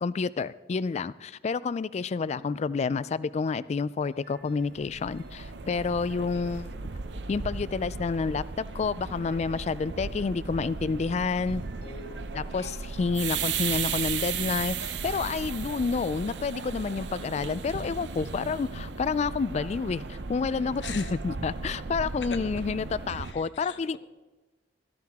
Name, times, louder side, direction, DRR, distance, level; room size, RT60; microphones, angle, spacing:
voice 1, 0.0-6.7 7.3-11.6 12.3-24.0, left 4 dB, 40° left, 18 dB, 0.3 m, -29 dB
sound 1, 4.1-18.7, right 1 dB, 60° right, 1.2 m, -50 dB
sound 2, 4.6-23.3, right 5 dB, 80° right, 0.7 m, -36 dB
voice 2, 6.2-6.6 11.8-12.9 20.8-21.1 23.1-24.0, left 5 dB, 80° left, 7 dB, 1.0 m, -44 dB
15.5 x 13.0 x 3.6 m, 1.1 s
head